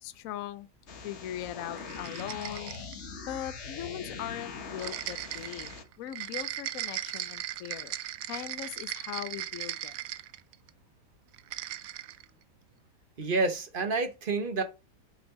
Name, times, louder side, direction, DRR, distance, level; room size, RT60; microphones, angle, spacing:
voice 1, 0.0-0.7 1.0-2.7 3.2-7.9 8.2-10.0, left 12 dB, 65° left, 1.0 m, -40 dB
sound 1, 0.9-5.8, left 4 dB, 45° left, 1.3 m, -42 dB
sound 2, 1.8-3.0 4.8-10.7 11.3-12.2, right 13 dB, 70° right, 0.9 m, -38 dB
voice 2, 13.2-14.6, right 3 dB, 40° right, 1.0 m, -29 dB
8.2 x 6.0 x 3.6 m
omnidirectional pair, 1.8 m